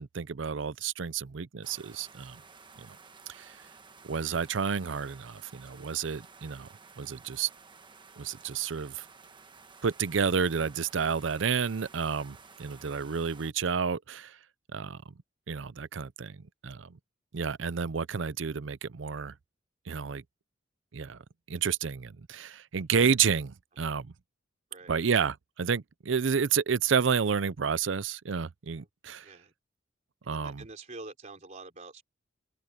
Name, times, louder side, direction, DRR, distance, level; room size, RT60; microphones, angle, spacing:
voice 1, 0.0-2.4 2.8-3.0 3.3-3.6 4.0-6.7 7.0-7.5 8.2-9.1 9.8-14.4 14.7-15.0 15.5-17.0 17.3-19.3 19.9-20.2 20.9-21.2 21.5-24.1 24.9-29.3 30.3-30.7, right 6 dB, 75° right, 0.6 m, -30 dB
sound 1, 1.6-13.5, right 4 dB, 25° right, 1.2 m, -53 dB
voice 2, 29.2-29.5 30.3-32.0, right 3 dB, 40° right, 3.3 m, -46 dB
head